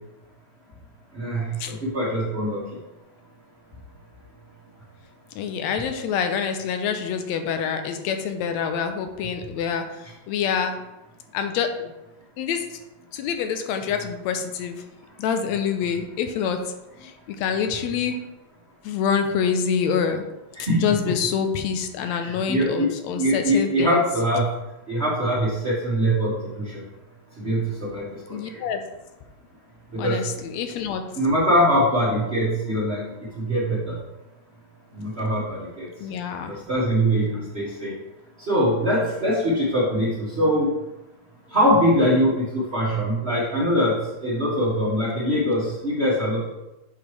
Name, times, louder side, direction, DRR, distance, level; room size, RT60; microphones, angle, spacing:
voice 1, 1.1-2.6 20.5-21.0 22.0-22.9 23.1-24.5 24.9-26.8 27.4-28.4 29.9-30.2 31.1-33.0 33.4-33.9 34.9-35.9 36.7-37.9 38.4-40.7 41.5-46.5, equal, 35° right, -9 dB, 1.0 m, -23 dB
voice 2, 5.4-10.8 11.3-11.7 12.4-12.8 13.1-14.8 15.2-16.6 17.0-18.2 18.8-20.3 20.6-24.0 28.3-28.8 30.0-31.0 36.0-36.6, left 7 dB, 80° left, 6 dB, 1.8 m, -26 dB
8.1 x 5.0 x 3.2 m, 0.98 s
omnidirectional pair, 3.3 m